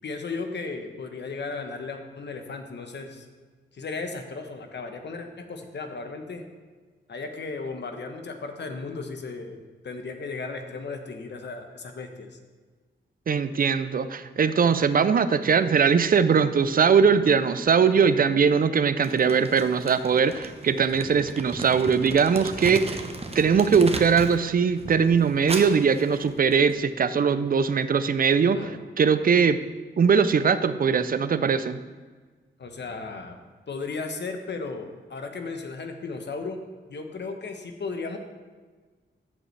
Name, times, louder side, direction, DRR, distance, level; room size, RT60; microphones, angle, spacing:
voice 1, 0.0-3.3 3.7-6.5 7.1-12.4 28.5-28.8 32.6-33.4 33.7-36.6 36.9-38.2, left 4 dB, 60° left, 5 dB, 1.0 m, -35 dB
voice 2, 13.3-23.0 23.4-28.7 29.0-29.6 30.0-31.8, right 6 dB, 45° right, 13 dB, 0.5 m, -21 dB
Crumpling crinkling, 19.0-24.4 24.7-26.7, right 2 dB, 30° right, 0.9 m, -36 dB
14.0 x 5.2 x 3.3 m, 1.4 s
cardioid pair, 65°, 20 cm